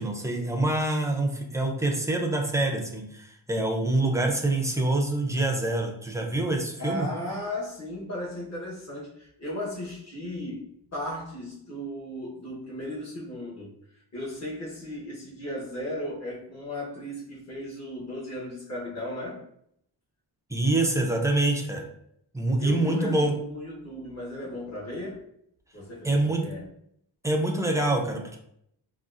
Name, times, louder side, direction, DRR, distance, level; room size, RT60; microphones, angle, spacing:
voice 1, 0.0-7.1 20.5-21.9 22.3-23.3 26.0-26.4 27.2-28.4, right 2 dB, 10° right, 1 dB, 0.3 m, -26 dB
voice 2, 6.8-13.7 14.1-19.4 22.6-25.2 25.7-26.6, left 1 dB, 35° left, -6 dB, 1.1 m, -36 dB
3.8 x 2.3 x 2.4 m, 0.72 s
wide cardioid pair, 160°, 43 cm